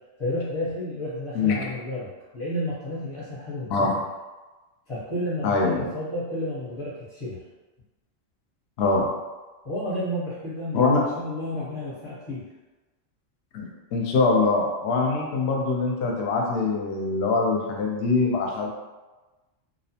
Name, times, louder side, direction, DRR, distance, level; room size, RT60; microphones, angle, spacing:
voice 1, 0.2-2.1 2.3-3.9 4.9-7.4 9.6-12.4, left 1 dB, 30° left, -10 dB, 0.6 m, -31 dB
voice 2, 5.4-5.8 8.8-9.1 10.7-11.0 13.5-18.7, left 3 dB, 65° left, -1 dB, 0.7 m, -23 dB
2.6 x 2.0 x 2.7 m, 1.2 s
omnidirectional pair, 1.3 m